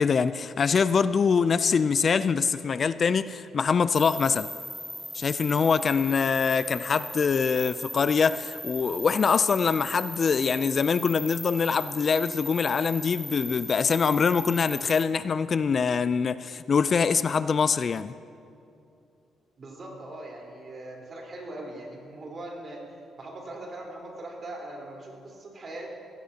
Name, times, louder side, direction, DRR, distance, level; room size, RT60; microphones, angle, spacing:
voice 1, 0.0-4.5 5.1-18.1, left 5 dB, 45° left, 14 dB, 0.4 m, -24 dB
sound 1, 3.9-15.0, equal, ahead, 0.8 m, -38 dB
voice 2, 19.6-22.8 23.2-25.9, right 1 dB, 45° right, -2 dB, 4.0 m, -40 dB
18.0 x 17.0 x 2.9 m, 2.6 s
cardioid pair, 90°, 0 cm